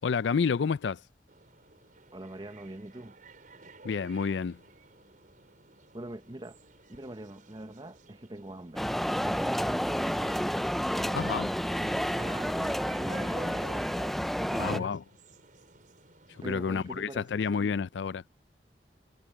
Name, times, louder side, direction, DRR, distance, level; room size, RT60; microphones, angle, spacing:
voice 1, 0.0-1.0 3.8-4.6 11.1-11.5 14.6-15.0 16.4-18.2, left 5 dB, 80° left, 0.4 m, -29 dB
sound 1, 1.3-17.1, right 3 dB, 50° right, 5.7 m, -53 dB
voice 2, 2.1-3.1 5.9-6.6 6.9-8.9 9.2-10.4 10.9-11.4 11.7-13.8 14.4-15.0 16.4-17.8, right 1 dB, 25° right, 0.9 m, -43 dB
sound 2, 8.8-14.8, equal, ahead, 0.3 m, -30 dB
head